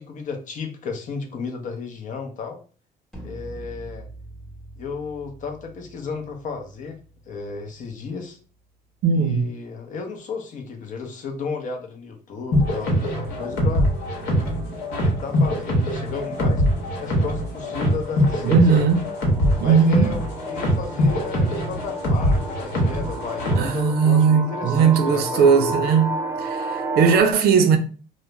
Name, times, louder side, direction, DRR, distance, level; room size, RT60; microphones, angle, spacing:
voice 1, 0.0-2.6 3.2-4.1 4.8-7.0 7.3-8.4 9.1-13.9 15.0-16.6 17.0-18.8 19.6-25.5, left 4 dB, 50° left, 0.6 m, -33 dB
sound 1, 3.1-9.1, right 2 dB, ahead, 0.9 m, -44 dB
voice 2, 9.0-9.5 18.4-19.0 19.6-20.1 23.6-26.1 26.4-27.8, right 6 dB, 70° right, 0.5 m, -18 dB
sound 2, 12.5-23.8, equal, 75° left, 1.0 m, -23 dB
sound 3, 18.2-27.2, right 3 dB, 15° right, 0.4 m, -33 dB
2.4 x 2.0 x 3.0 m
cardioid pair, 110°, 17 cm